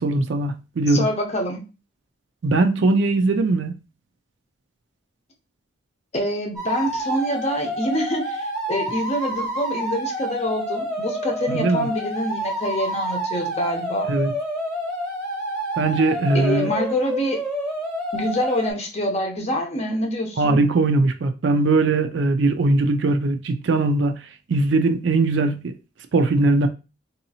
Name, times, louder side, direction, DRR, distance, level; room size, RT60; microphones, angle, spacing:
voice 1, 0.0-1.1 2.4-3.7 11.5-11.9 14.1-14.3 15.8-16.7 20.4-24.2 24.5-25.7 26.1-26.7, right 2 dB, 65° right, 0.4 m, -20 dB
voice 2, 0.9-1.6 6.1-14.1 16.3-17.4 18.1-20.6, equal, 35° left, 0.7 m, -26 dB
sound 1, 6.6-18.7, equal, ahead, 0.9 m, -28 dB
3.9 x 2.7 x 2.7 m
head